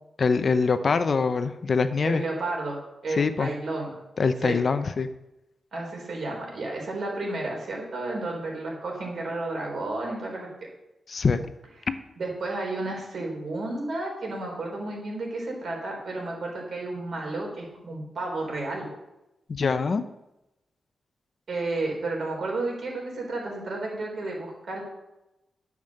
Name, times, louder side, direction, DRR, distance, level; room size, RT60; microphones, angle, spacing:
voice 1, 0.2-2.2 3.1-3.5 4.2-5.1 11.1-11.4 11.9-12.0 19.5-20.0, left 4 dB, 45° left, 10 dB, 0.6 m, -24 dB
voice 2, 2.0-2.8 3.0-3.9 4.4-4.6 5.7-10.7 12.2-18.9 21.5-25.0, right 2 dB, 55° right, 0 dB, 4.1 m, -32 dB
10.5 x 7.3 x 6.5 m, 0.93 s
wide cardioid pair, 155°, 0 cm